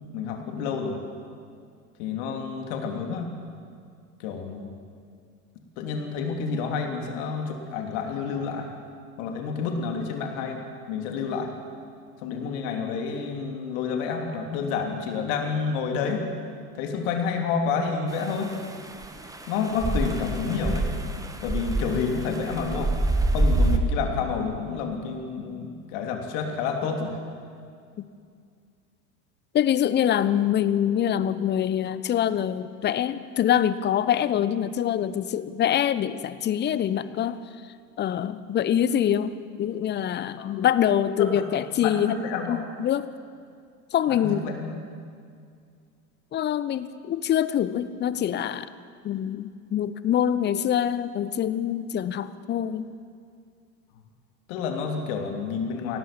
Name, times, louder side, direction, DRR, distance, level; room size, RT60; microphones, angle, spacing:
voice 1, 0.1-1.0 2.0-3.3 4.2-4.7 5.8-8.7 9.2-10.6 10.9-11.5 12.2-16.3 16.8-18.5 19.5-20.9 21.4-22.9 23.3-27.2 40.4-40.5 41.3-41.4 41.8-42.7 44.1-44.7 54.5-56.0, left 5 dB, 50° left, 3 dB, 3.1 m, -29 dB
sound 1, 18.1-23.8, right 2 dB, 5° right, 1.7 m, -26 dB
voice 2, 29.5-37.4 38.0-42.2 42.5-43.1 43.9-44.5 46.3-48.7 49.0-52.9, left 10 dB, 20° left, 15 dB, 0.8 m, -25 dB
24.0 x 17.5 x 7.4 m, 2.3 s
figure-of-eight pair, 80°, 47 cm